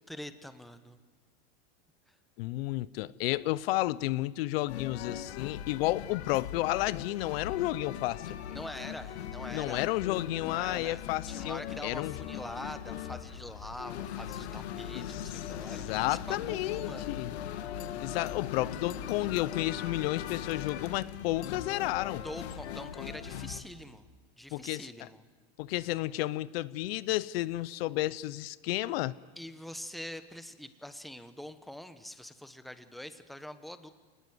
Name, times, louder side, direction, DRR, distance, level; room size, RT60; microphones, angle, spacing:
voice 1, 0.1-1.0 2.1-2.2 8.5-9.8 10.4-17.3 22.2-24.0 24.4-25.2 29.4-33.9, left 1 dB, ahead, 10 dB, 1.0 m, -44 dB
voice 2, 2.4-8.3 9.5-12.1 14.9-17.3 18.0-22.2 24.5-25.1 25.6-29.2, left 17 dB, 70° left, 19 dB, 0.7 m, -32 dB
sound 1, 4.7-23.6, left 9 dB, 90° left, 1.7 m, -40 dB
26.5 x 19.5 x 9.5 m, 1.5 s
supercardioid pair, 145°, 31 cm